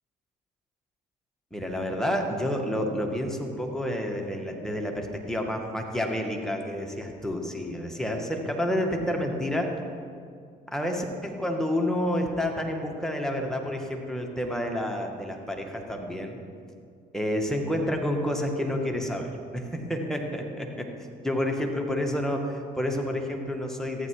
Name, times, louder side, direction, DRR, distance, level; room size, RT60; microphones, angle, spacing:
voice 1, 1.5-9.7 10.7-16.4 17.1-20.9 21.2-24.1, left 1 dB, ahead, 1 dB, 2.0 m, -29 dB
14.0 x 10.0 x 4.9 m, 2.2 s
hypercardioid pair, 55°, 21 cm